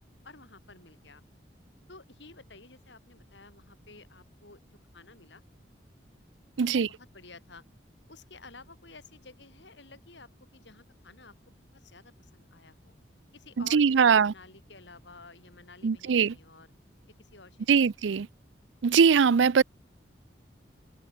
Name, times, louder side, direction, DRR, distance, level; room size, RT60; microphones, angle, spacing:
voice 1, 0.2-1.2 1.9-4.7 4.9-5.4 6.6-7.6 8.1-12.9 13.3-16.7 17.2-17.9, left 3 dB, 75° left, 4.7 m, -52 dB
voice 2, 6.6-6.9 13.7-14.3 15.8-16.3 17.7-18.3 18.8-19.6, right 6 dB, 85° right, 0.5 m, -21 dB
open air
head